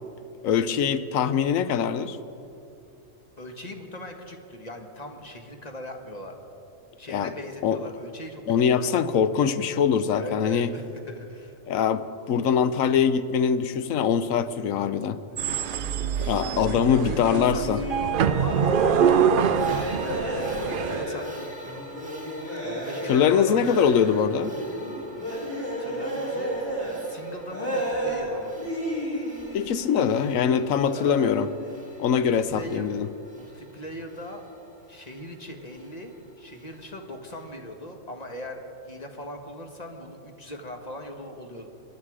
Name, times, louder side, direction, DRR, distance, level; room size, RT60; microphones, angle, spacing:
voice 1, 0.4-2.2 7.1-7.3 7.6-7.8 8.5-10.7 11.7-15.2 16.3-17.8 23.1-24.5 29.5-31.5 32.0-33.1, left 7 dB, 75° left, 12 dB, 1.1 m, -23 dB
voice 2, 3.4-6.4 7.0-8.4 8.7-8.9 10.1-11.6 15.3-20.5 20.8-21.8 22.6-23.6 25.8-26.5 26.8-28.6 30.9-31.4 32.1-32.9 33.3-34.4 34.9-41.7, left 1 dB, 30° left, 3 dB, 1.4 m, -40 dB
sound 1, 15.4-21.0, right 8 dB, 70° right, 0.5 m, -25 dB
sound 2, 17.2-27.2 27.5-28.3 28.6-31.9 32.1-32.4, right 1 dB, 10° left, 4.4 m, -32 dB
sound 3, 19.4-37.6, equal, 5° right, 1.5 m, -48 dB
23.0 x 11.0 x 4.9 m, 2.7 s
omnidirectional pair, 1.4 m